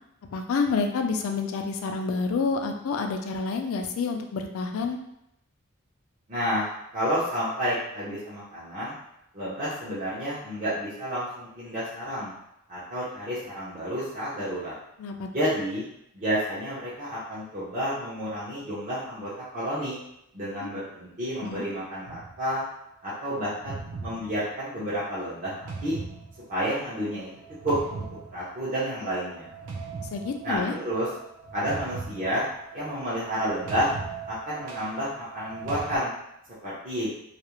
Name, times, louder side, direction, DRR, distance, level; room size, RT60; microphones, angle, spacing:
voice 1, 0.3-5.0 15.0-15.3 20.6-20.7 21.4-21.6 30.1-30.7, left 4 dB, 75° left, 4 dB, 0.3 m, -28 dB
voice 2, 6.3-8.9 9.3-12.3 12.7-14.7 15.3-15.8 16.1-20.0 20.3-22.6 23.0-26.0 26.5-27.3 27.6-28.0 28.3-29.5 30.4-31.1 31.5-32.5 32.7-33.9 34.3-36.1 36.6-37.1, equal, 35° right, -11 dB, 0.6 m, -30 dB
sound 1, 22.1-22.5 23.4-36.0, right 4 dB, 85° right, 0.4 m, -40 dB
2.4 x 2.0 x 2.9 m, 0.79 s
head